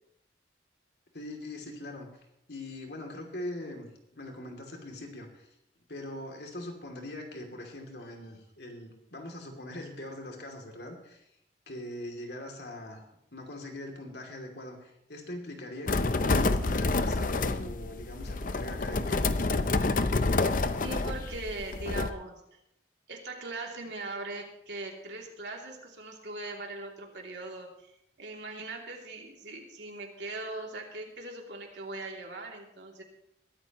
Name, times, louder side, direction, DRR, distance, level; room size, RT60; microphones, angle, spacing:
voice 1, 1.1-2.1 2.5-5.5 5.9-11.3 11.7-13.0 13.3-19.2, left 1 dB, 70° left, 2 dB, 2.8 m, -42 dB
sound 1, 15.9-22.1, left 3 dB, 50° left, 0.6 m, -28 dB
voice 2, 20.8-22.6 23.1-33.0, right 2 dB, 80° right, 0 dB, 2.9 m, -40 dB
22.0 x 13.0 x 3.1 m, 0.78 s
head